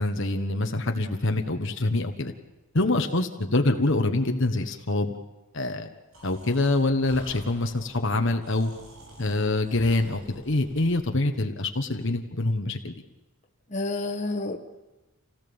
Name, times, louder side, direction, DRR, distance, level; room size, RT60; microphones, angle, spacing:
voice 1, 0.0-2.3 2.7-5.1 5.5-5.9 6.2-8.7 9.2-12.9, left 2 dB, 55° left, 5 dB, 1.3 m, -25 dB
Breathing, 6.1-11.2, right 1 dB, 70° right, 7.9 m, -48 dB
voice 2, 13.7-14.6, left 2 dB, 30° left, 3 dB, 1.5 m, -29 dB
27.5 x 17.5 x 7.1 m, 1.1 s
head